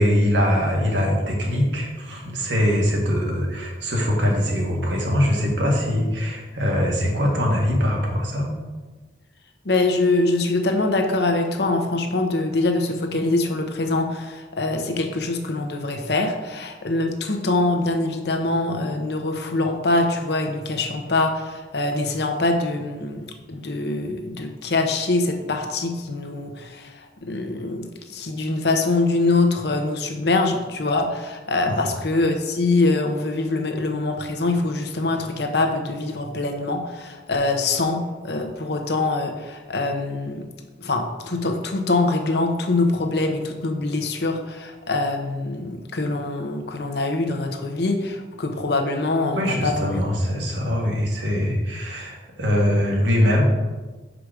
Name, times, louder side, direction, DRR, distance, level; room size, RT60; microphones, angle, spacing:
voice 1, 0.0-8.5 31.6-31.8 49.3-53.4, equal, 85° right, -1 dB, 1.7 m, -22 dB
voice 2, 9.6-40.4 40.8-50.0, left 2 dB, 65° left, 4 dB, 0.9 m, -24 dB
6.1 x 5.0 x 5.0 m, 1.3 s
head